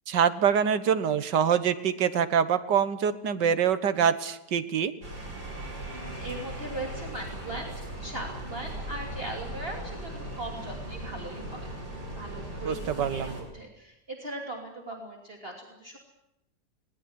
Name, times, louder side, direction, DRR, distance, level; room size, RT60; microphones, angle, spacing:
voice 1, 0.1-4.9 12.7-13.4, right 7 dB, 85° right, 13 dB, 1.9 m, -25 dB
sound 1, 5.0-13.4, right 1 dB, 70° right, 6.8 m, -38 dB
voice 2, 5.5-7.7 8.0-16.0, right 1 dB, 35° right, 1 dB, 3.1 m, -39 dB
20.5 x 19.5 x 9.5 m, 0.85 s
omnidirectional pair, 1.8 m